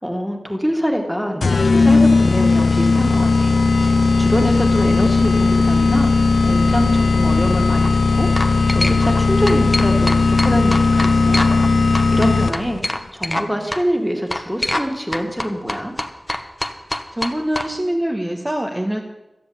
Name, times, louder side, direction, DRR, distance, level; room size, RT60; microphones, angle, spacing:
voice 1, 0.0-3.5 3.8-6.1 6.4-11.6 12.1-12.8 13.1-15.9, equal, ahead, 2 dB, 2.3 m, -25 dB
sound 1, 1.4-12.8, left 3 dB, 90° left, 0.5 m, -16 dB
sound 2, 7.6-7.9 8.4-9.2 9.5-11.7 11.9-13.5 13.7-13.8 14.3-14.9 15.1-17.7, left 1 dB, 15° left, 1.2 m, -25 dB
voice 2, 17.1-19.0, right 1 dB, 20° right, 0 dB, 1.3 m, -24 dB
13.0 x 7.7 x 8.7 m, 1.0 s
wide cardioid pair, 70°, 0 cm